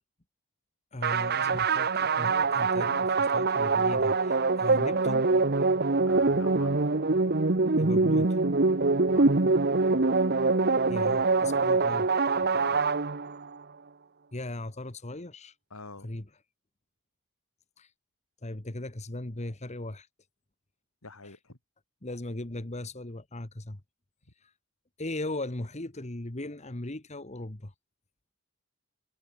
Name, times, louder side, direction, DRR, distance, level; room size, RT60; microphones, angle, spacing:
voice 1, 0.9-5.3 7.8-8.4 10.9-12.1 14.3-15.5 16.0-16.3 17.8-17.9 18.4-20.1 21.2-21.4 22.0-23.8 24.4-24.5 25.0-27.7, left 1 dB, 30° left, 1.5 m, -38 dB
sound 1, 1.0-13.6, right 3 dB, 45° right, 1.1 m, -24 dB
voice 2, 6.0-6.8 9.1-9.4 12.3-12.8 15.7-16.1 21.0-21.6, left 3 dB, 70° left, 3.2 m, -45 dB
head